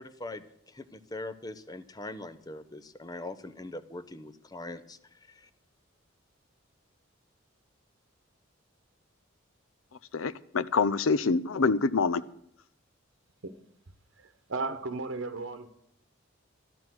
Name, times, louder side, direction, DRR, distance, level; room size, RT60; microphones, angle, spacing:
voice 1, 0.0-5.0 5.3-5.5, left 2 dB, 20° left, 0.7 m, -42 dB
voice 2, 10.1-12.2, left 4 dB, 90° left, 0.6 m, -26 dB
voice 3, 14.2-15.7, right 3 dB, 70° right, 1.0 m, -35 dB
12.5 x 11.5 x 6.1 m
head